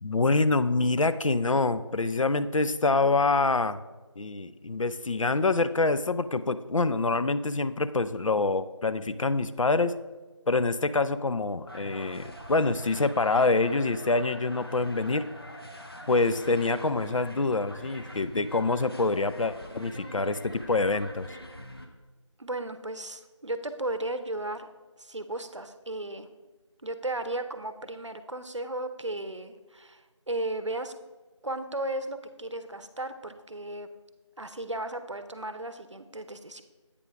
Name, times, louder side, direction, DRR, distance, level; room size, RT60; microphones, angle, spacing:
voice 1, 0.0-3.8 4.2-9.9 10.5-15.3 16.1-21.3, left 3 dB, 85° left, 12 dB, 0.4 m, -26 dB
sound 1, 11.7-21.9, equal, 50° left, 0.8 m, -44 dB
voice 2, 22.4-24.7 25.0-26.3 26.8-30.0 30.3-30.9 31.4-33.9 34.4-36.6, right 1 dB, 65° right, 10 dB, 0.7 m, -35 dB
8.4 x 3.4 x 5.9 m, 1.2 s
figure-of-eight pair, 180°, 16 cm